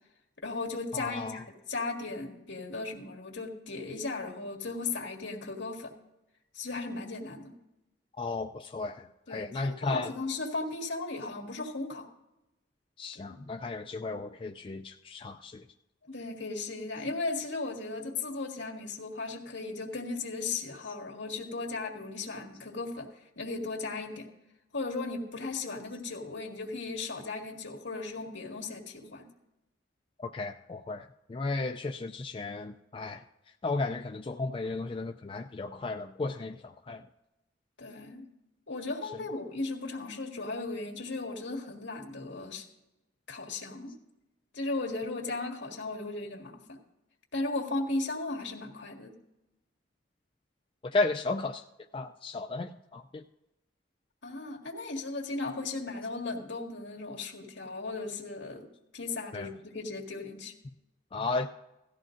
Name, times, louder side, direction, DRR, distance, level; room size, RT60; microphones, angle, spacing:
voice 1, 0.4-5.9 6.5-7.5 9.3-12.1 13.1-13.4 16.0-23.1 23.4-24.3 24.7-29.3 37.8-38.3 38.7-42.6 43.3-43.9 44.5-46.8 47.3-49.1 54.2-58.7 58.9-60.5, left 3 dB, 70° left, 2 dB, 1.9 m, -36 dB
voice 2, 0.9-1.4 8.2-10.1 13.0-15.6 30.2-33.2 33.6-37.0 50.8-51.6 51.9-53.2 59.3-59.5 61.1-61.5, left 3 dB, 25° left, 5 dB, 0.3 m, -34 dB
17.0 x 13.5 x 2.6 m, 0.96 s
head